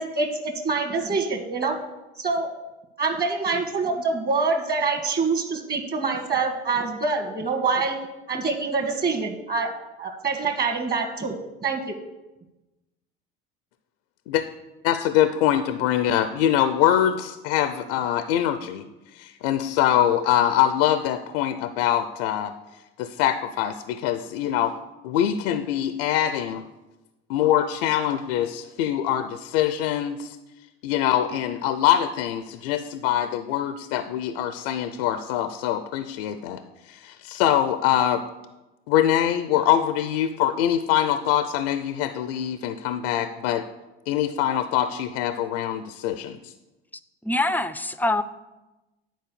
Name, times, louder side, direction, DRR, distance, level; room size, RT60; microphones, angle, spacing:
voice 1, 0.0-1.8 2.2-2.5 3.0-8.0 8.3-11.3 11.6-12.0, right 4 dB, 30° right, 5 dB, 1.7 m, -25 dB
voice 2, 14.8-18.8 19.1-22.5 23.0-24.7 25.0-26.6 27.3-30.4 30.8-38.2 38.9-43.6 44.1-46.5, left 11 dB, 75° left, 11 dB, 0.5 m, -23 dB
voice 3, 47.2-48.2, left 2 dB, 5° left, 13 dB, 0.4 m, -24 dB
9.3 x 4.4 x 6.8 m, 1.0 s
hypercardioid pair, 75°, 29 cm